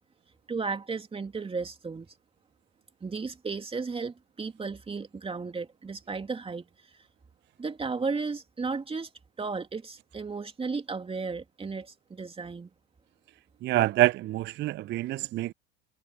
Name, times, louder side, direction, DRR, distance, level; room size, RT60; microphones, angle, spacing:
voice 1, 0.5-2.1 3.0-7.1 7.6-9.1 9.4-12.7, right 4 dB, 15° right, 2.6 m, -34 dB
voice 2, 13.6-15.5, right 16 dB, 35° right, 0.6 m, -26 dB
figure-of-eight pair, 75°, 31 cm